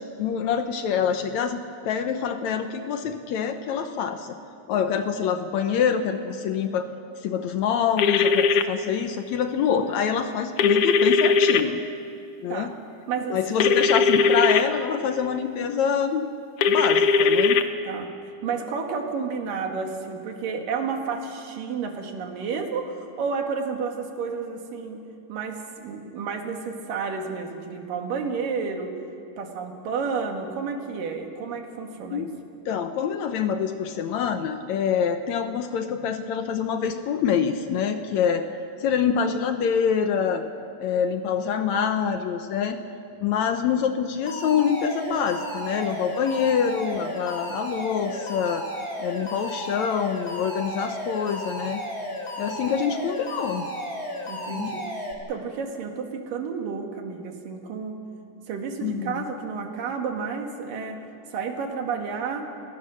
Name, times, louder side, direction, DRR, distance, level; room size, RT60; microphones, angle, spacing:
voice 1, 0.0-4.4 4.7-6.8 7.2-11.8 12.4-12.7 13.3-16.2 16.7-17.6 32.1-32.3 32.7-38.5 38.8-40.4 40.8-42.8 43.2-48.6 49.0-51.8 52.4-53.7 54.5-54.8 58.8-59.3, left 7 dB, 70° left, 8 dB, 1.9 m, -25 dB
sound 1, 8.0-8.6 10.6-11.6 13.6-14.6 16.6-17.6, left 5 dB, 90° left, 1.3 m, -19 dB
voice 2, 13.1-13.9 17.8-18.1 18.4-25.0 25.3-28.9 29.4-32.3 54.3-57.9 58.5-61.0 61.3-62.5, right 5 dB, 80° right, 3 dB, 3.6 m, -31 dB
Alarm, 44.3-55.1, equal, 20° left, 3.0 m, -34 dB
30.0 x 18.0 x 6.4 m, 2.5 s
omnidirectional pair, 3.8 m